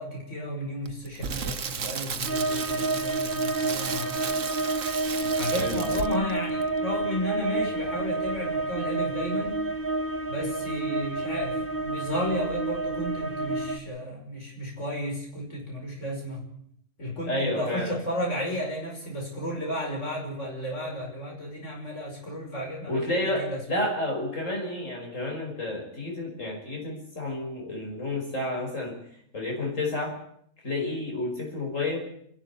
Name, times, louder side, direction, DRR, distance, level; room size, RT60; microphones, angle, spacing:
voice 1, 0.0-4.4 5.2-9.6 10.3-16.4 17.0-23.6, equal, 70° left, 0 dB, 5.9 m, -33 dB
Crackle, 0.9-6.3 6.6-6.8, right 6 dB, 75° right, 1.5 m, -34 dB
sound 1, 2.3-13.8, right 2 dB, 45° right, 1.5 m, -29 dB
voice 2, 17.3-17.9 22.9-28.9 29.3-30.2 30.6-32.1, left 2 dB, 90° left, 0 dB, 5.9 m, -30 dB
29.5 x 11.5 x 9.7 m, 0.69 s
omnidirectional pair, 1.3 m